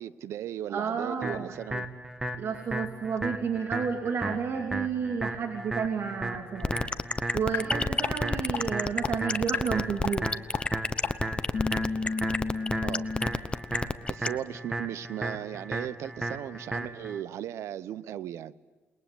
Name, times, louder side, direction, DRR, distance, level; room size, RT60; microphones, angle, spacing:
voice 1, 0.0-1.9 12.8-13.1 14.1-18.5, right 11 dB, 80° right, 17 dB, 0.9 m, -37 dB
voice 2, 0.7-1.6 2.4-6.8 7.3-10.3, right 6 dB, 60° right, 3 dB, 2.8 m, -31 dB
sound 1, 1.2-17.2, right 2 dB, 10° right, 2.3 m, -36 dB
sound 2, 6.6-14.3, left 3 dB, 20° left, 1.0 m, -28 dB
sound 3, 7.5-7.6 8.0-8.1 8.5-8.6 9.0-9.1 9.5-9.6 10.0-10.1 10.5-10.6 11.0-11.1 11.5-13.3, left 4 dB, 55° left, 2.4 m, -30 dB
28.0 x 21.0 x 8.1 m, 1.3 s
cardioid pair, 85°, 5 cm